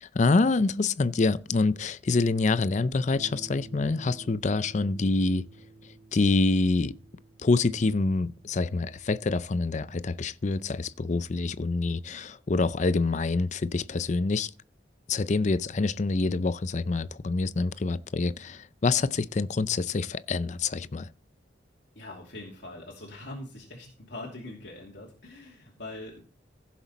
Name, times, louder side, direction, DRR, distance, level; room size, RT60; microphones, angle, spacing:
voice 1, 0.0-5.5 6.1-6.9 7.4-14.5 15.1-21.1, left 3 dB, 40° left, 0.5 m, -26 dB
sound 1, 3.1-9.4, right 2 dB, 55° right, 4.6 m, -51 dB
voice 2, 21.9-26.2, left 2 dB, 70° left, 2.7 m, -42 dB
15.5 x 7.3 x 4.1 m
head